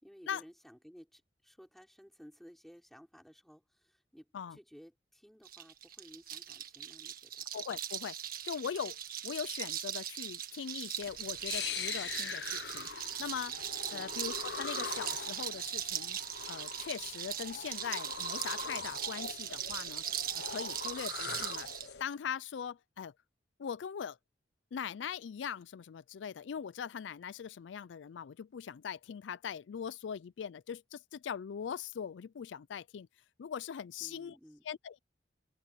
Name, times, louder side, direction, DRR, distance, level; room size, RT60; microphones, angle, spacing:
voice 1, 0.0-7.5 13.9-14.3 34.0-34.7, equal, ahead, 5.2 m, -57 dB
sound 1, 5.4-21.9, right 10 dB, 50° right, 1.7 m, -40 dB
voice 2, 7.5-8.2 8.4-9.0 9.2-12.9 13.2-13.5 13.9-16.2 16.5-20.0 20.3-21.7 22.0-23.1 23.6-24.2 24.7-33.1 33.4-34.4 34.7-35.0, left 7 dB, 80° left, 0.4 m, -41 dB
sound 2, 11.0-22.0, left 6 dB, 65° left, 0.9 m, -43 dB
open air
head